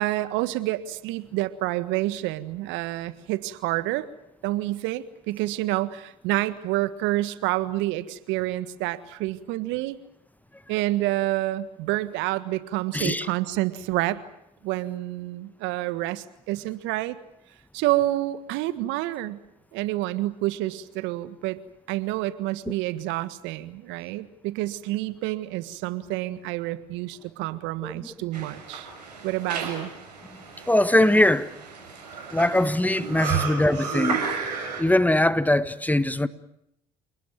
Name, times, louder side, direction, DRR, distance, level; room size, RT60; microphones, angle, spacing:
voice 1, 0.0-4.1 4.4-10.0 10.7-14.2 14.6-17.2 17.7-19.4 19.7-21.6 21.9-28.9 29.2-29.9 33.3-33.4, right 16 dB, 65° right, 1.6 m, -28 dB
voice 2, 12.9-13.3 27.8-27.9 30.7-31.5 32.3-36.3, left 1 dB, 10° left, 1.5 m, -22 dB
sound 1, 28.3-34.8, right 5 dB, 90° right, 6.4 m, -33 dB
28.5 x 19.5 x 9.2 m
hypercardioid pair, 60°, 21 cm